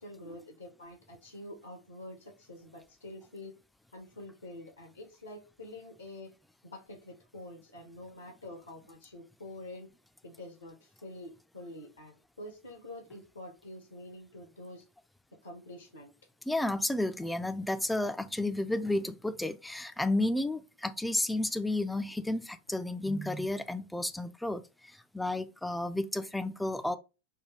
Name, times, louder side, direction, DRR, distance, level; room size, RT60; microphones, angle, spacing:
voice 1, 0.0-3.5 3.9-6.3 6.6-9.9 10.2-14.8 15.4-16.1, left 1 dB, 80° left, 0.9 m, -47 dB
voice 2, 16.5-27.0, left 1 dB, 5° left, 0.3 m, -32 dB
4.5 x 2.3 x 3.2 m
figure-of-eight pair, 90°, 0 cm